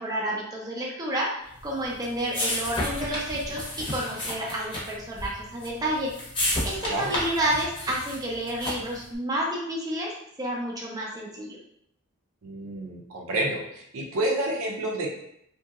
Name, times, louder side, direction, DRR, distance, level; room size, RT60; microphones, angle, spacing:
voice 1, 0.0-6.1 6.6-10.1 10.4-11.6, right 1 dB, 20° right, -3 dB, 0.5 m, -30 dB
sound 1, 1.6-9.0, left 1 dB, 25° left, 0.7 m, -32 dB
voice 2, 6.8-7.1 12.4-15.1, right 1 dB, 80° right, 0 dB, 0.6 m, -29 dB
2.8 x 2.7 x 2.4 m, 0.73 s
head